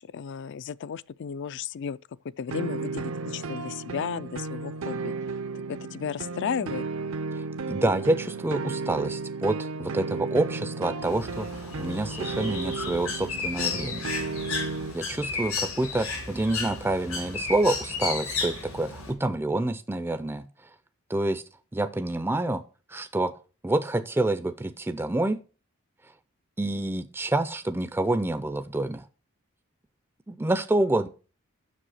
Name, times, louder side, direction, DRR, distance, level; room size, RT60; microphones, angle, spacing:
voice 1, 0.0-2.0 2.4-5.1 5.7-6.8, left 7 dB, 55° left, 0.4 m, -34 dB
sound 1, 2.5-14.9, right 4 dB, 65° right, 0.6 m, -34 dB
voice 2, 7.3-14.1 14.9-20.5 21.1-21.4 21.7-22.6 22.9-23.3 23.6-25.4 26.6-29.0 30.3-31.1, right 2 dB, 10° right, 0.4 m, -27 dB
Bird, 11.0-19.1, left 4 dB, 85° left, 4.0 m, -33 dB
7.6 x 6.4 x 6.3 m
head